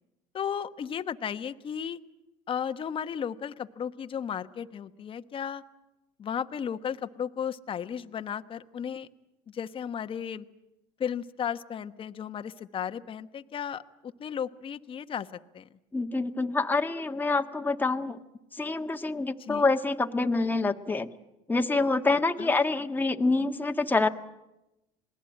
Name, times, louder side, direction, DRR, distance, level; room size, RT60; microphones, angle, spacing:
voice 1, 0.3-2.0 2.5-5.6 6.2-9.1 9.5-10.4 11.0-15.3 15.5-15.7 19.4-19.7 22.4-22.5, left 8 dB, 35° left, 9 dB, 1.2 m, -34 dB
voice 2, 15.9-18.2 18.5-21.1 21.5-24.1, left 3 dB, 15° left, 5 dB, 1.5 m, -26 dB
28.0 x 20.0 x 8.9 m, 0.94 s
supercardioid pair, 95°, 14 cm